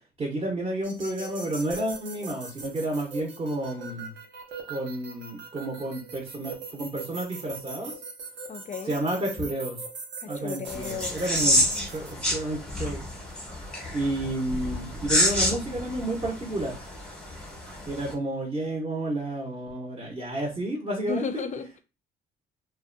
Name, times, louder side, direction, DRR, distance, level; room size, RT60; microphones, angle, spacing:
voice 1, 0.2-4.1 4.7-7.9 8.8-9.8 10.3-13.0 13.9-16.8 17.9-21.4, right 1 dB, 30° right, 0.7 m, -31 dB
sound 1, 0.8-12.1, right 4 dB, 65° right, 0.7 m, -41 dB
voice 2, 8.5-9.0 10.2-11.2 11.7-11.9 21.1-21.8, left 5 dB, 40° left, 0.4 m, -35 dB
sound 2, 10.7-18.1, equal, 5° left, 0.8 m, -29 dB
2.6 x 2.1 x 2.5 m
cardioid pair, 90°, 20 cm